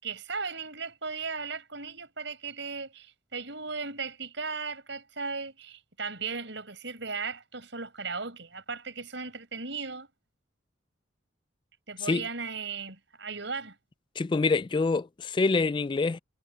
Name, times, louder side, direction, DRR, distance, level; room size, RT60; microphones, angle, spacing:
voice 1, 0.0-10.1 11.9-13.8, right 4 dB, 70° right, 5.8 m, -36 dB
voice 2, 14.2-16.2, left 3 dB, 25° left, 0.3 m, -26 dB
head